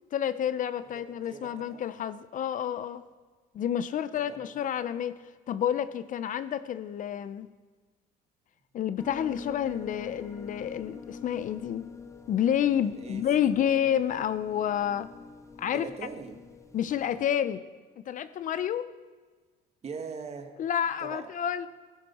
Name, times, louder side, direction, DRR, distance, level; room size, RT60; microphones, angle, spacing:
voice 1, 0.1-3.0 3.5-5.2 5.5-7.5 8.7-11.9 12.3-15.1 15.6-15.9 16.7-17.6 18.1-18.9 20.6-21.7, left 9 dB, 50° left, 0.5 m, -29 dB
voice 2, 0.8-1.8 4.1-4.5 12.8-13.8 15.7-16.4 19.8-20.6 21.0-21.3, right 5 dB, 40° right, 1.5 m, -42 dB
sound 1, 9.0-17.3, left 5 dB, 15° left, 0.9 m, -46 dB
15.0 x 14.0 x 4.3 m
cardioid pair, 110°, 17 cm